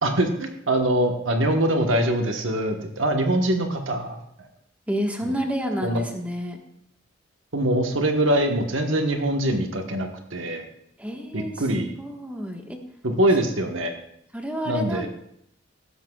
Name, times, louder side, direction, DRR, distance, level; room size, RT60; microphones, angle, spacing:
voice 1, 0.0-4.2 5.2-5.3 5.8-6.0 7.5-10.6 11.3-11.9 13.0-14.0 14.7-15.1, right 1 dB, 80° right, 4 dB, 1.3 m, -23 dB
voice 2, 4.9-6.6 11.0-12.8 14.3-15.1, equal, 5° right, 2 dB, 1.4 m, -30 dB
16.0 x 13.0 x 2.4 m, 0.72 s
head